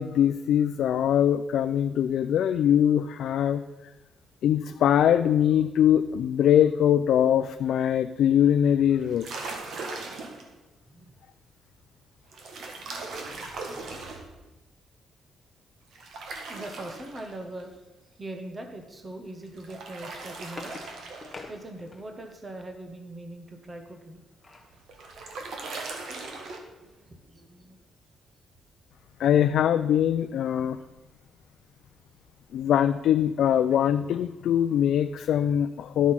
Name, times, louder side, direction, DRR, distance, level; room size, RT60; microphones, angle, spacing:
voice 1, 0.0-3.6 4.4-9.6 29.2-30.8 32.5-36.1, left 10 dB, 75° left, 8 dB, 0.4 m, -22 dB
sound 1, 9.0-10.5 12.3-14.3 15.9-17.6 19.4-21.6 24.5-26.6, right 3 dB, 65° right, 1.6 m, -39 dB
voice 2, 13.2-14.0 16.5-17.9 18.2-20.7 21.5-24.2 26.8-27.8, right 1 dB, 25° right, 4 dB, 1.1 m, -41 dB
sound 2, 20.2-22.3 23.9-24.8 25.3-25.4 25.6-25.9, left 3 dB, 20° left, 1.0 m, -46 dB
11.5 x 6.1 x 5.7 m, 1.1 s
cardioid pair, 140°, 0 cm